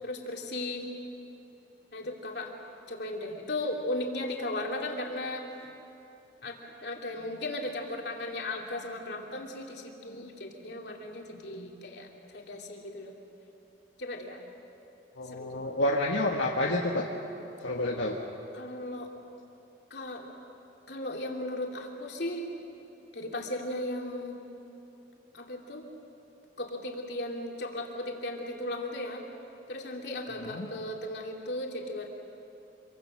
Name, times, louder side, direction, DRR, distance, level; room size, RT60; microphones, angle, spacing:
voice 1, 0.0-0.9 1.9-2.5 2.9-5.7 6.4-13.1 14.0-14.4 15.2-15.5 18.5-19.1 19.9-20.3 20.9-22.5 23.1-24.4 25.3-25.9 26.6-29.2 29.7-32.1, left 1 dB, 60° left, 0 dB, 2.9 m, -36 dB
voice 2, 15.2-17.0 17.6-18.2 30.4-30.7, left 1 dB, 80° left, -1 dB, 1.5 m, -29 dB
26.5 x 24.0 x 6.6 m, 2.9 s
head